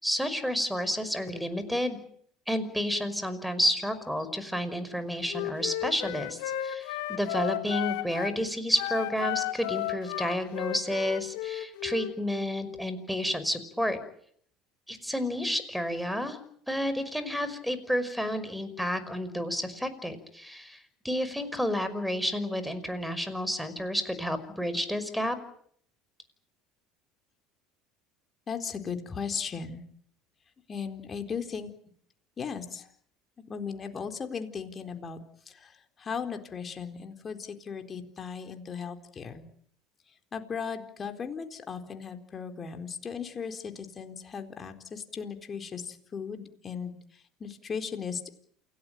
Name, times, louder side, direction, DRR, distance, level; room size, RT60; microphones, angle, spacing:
voice 1, 0.0-2.0 2.5-14.0 14.9-16.4 16.7-25.4, equal, ahead, 13 dB, 5.5 m, -30 dB
Wind instrument woodwind instrument, 5.3-8.4 8.7-12.1, left 15 dB, 70° left, 2.4 m, -34 dB
voice 2, 28.5-29.8 30.7-31.7 32.4-32.9 33.5-35.2 35.5-39.4 40.3-48.2, left 6 dB, 35° left, 6 dB, 4.2 m, -37 dB
28.5 x 18.0 x 9.3 m, 0.65 s
hypercardioid pair, 75°, 0 cm